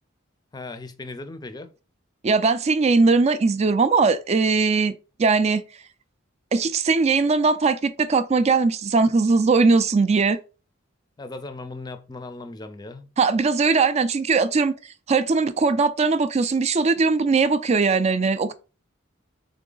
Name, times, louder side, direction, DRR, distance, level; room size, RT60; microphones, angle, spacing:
voice 1, 0.5-1.7 11.2-13.1, left 2 dB, 20° left, 0.5 m, -37 dB
voice 2, 2.2-4.9 5.2-5.6 6.5-10.4 13.2-14.7 15.1-18.5, right 4 dB, 35° right, 0.4 m, -20 dB
3.6 x 3.5 x 3.9 m
head